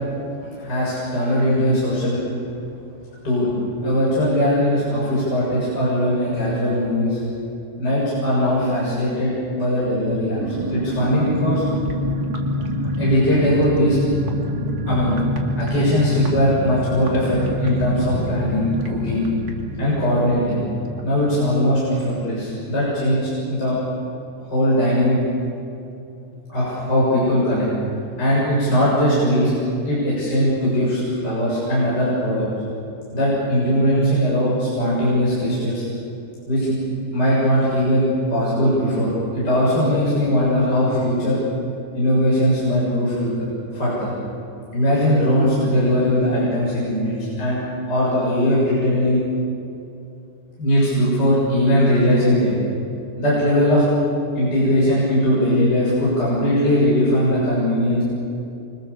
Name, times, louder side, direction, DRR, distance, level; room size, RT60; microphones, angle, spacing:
voice 1, 0.6-2.2 3.2-3.5 3.8-7.2 7.8-10.4 10.7-11.6 13.0-14.0 14.9-15.2 15.6-19.3 19.8-20.6 21.0-23.8 24.5-25.2 26.5-27.7 28.2-29.5 29.8-32.5 33.1-35.8 36.5-36.8 37.1-41.4 41.9-43.3 43.7-44.1 44.7-47.6 47.9-49.2 50.6-52.6 53.2-53.9 54.3-58.0, equal, 20° left, -7 dB, 7.5 m, -20 dB
sound 1, 10.4-22.7 23.0-23.1 23.4-23.7, left 1 dB, 35° right, 1.5 m, -26 dB
28.0 x 25.5 x 7.1 m, 2.7 s
omnidirectional pair, 5.7 m